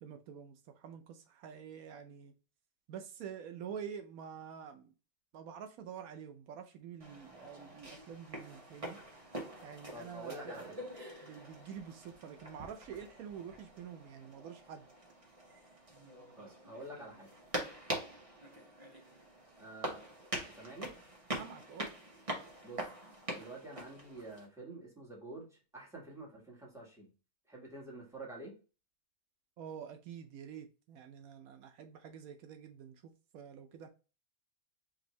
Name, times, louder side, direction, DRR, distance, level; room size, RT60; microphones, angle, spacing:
voice 1, 0.0-2.3 2.9-4.9 5.3-9.0 9.6-10.8 11.2-14.9 21.4-21.9 29.6-33.9, right 8 dB, 80° right, 1.0 m, -47 dB
sound 1, 7.0-24.5, right 1 dB, 25° right, 1.1 m, -44 dB
voice 2, 9.9-10.8 16.4-17.3 19.6-20.0 20.5-20.9 22.6-22.9 23.3-27.1 27.5-28.6, right 2 dB, ahead, 1.4 m, -48 dB
5.3 x 2.6 x 3.1 m
omnidirectional pair, 1.5 m